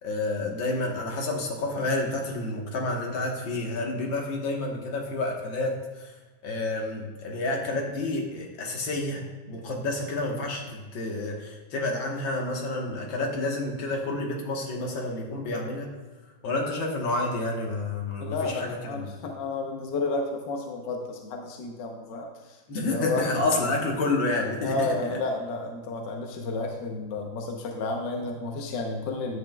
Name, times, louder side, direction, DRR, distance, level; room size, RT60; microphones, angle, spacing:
voice 1, 0.0-6.1 6.4-15.9 16.4-19.1 22.7-25.2, left 2 dB, 85° left, 0 dB, 2.0 m, -29 dB
voice 2, 18.2-22.3 22.8-23.8 24.6-29.4, left 3 dB, 70° left, 2 dB, 1.4 m, -31 dB
10.5 x 8.1 x 2.2 m, 1.3 s
omnidirectional pair, 2.0 m